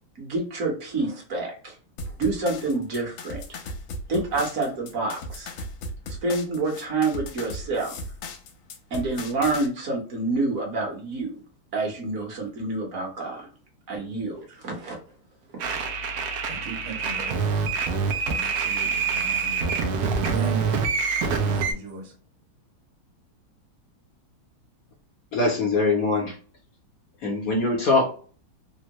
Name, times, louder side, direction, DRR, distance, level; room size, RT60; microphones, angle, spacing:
voice 1, 0.2-1.7 2.2-3.4 4.1-5.5 6.2-8.0 8.9-11.4 11.7-13.5 13.9-15.0 15.5-15.6, right 3 dB, 50° right, -1 dB, 1.3 m, -28 dB
sound 1, 2.0-9.7, left 1 dB, 85° left, 1.4 m, -37 dB
sound 2, 15.6-21.7, right 5 dB, 70° right, 1.0 m, -26 dB
voice 2, 16.5-17.7 18.3-19.7 20.1-20.8 21.4-22.1, right 4 dB, 90° right, 2 dB, 1.6 m, -37 dB
voice 3, 25.3-26.4 27.2-28.1, left 3 dB, 60° left, 0 dB, 1.0 m, -22 dB
3.6 x 2.1 x 2.9 m, 0.41 s
omnidirectional pair, 2.2 m